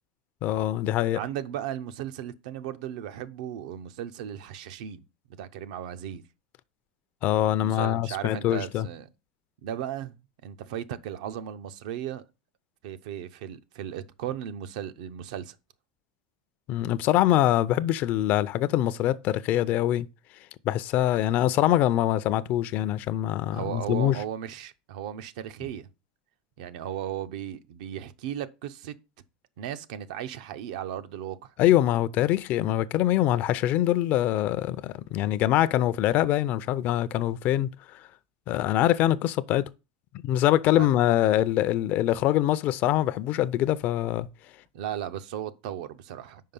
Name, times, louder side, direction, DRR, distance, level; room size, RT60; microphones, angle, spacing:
voice 1, 0.4-1.2 7.2-8.9 16.7-20.1 20.7-24.2 31.6-37.7 38.5-39.7 40.2-44.3, left 13 dB, 45° left, 0.4 m, -24 dB
voice 2, 1.1-5.0 5.3-6.2 7.6-9.1 9.6-12.3 12.8-15.6 23.5-25.9 26.6-28.9 29.6-31.5 40.8-40.9 44.7-46.4, right 10 dB, 70° right, 0.6 m, -36 dB
5.6 x 4.7 x 5.3 m
supercardioid pair, 140°, 4 cm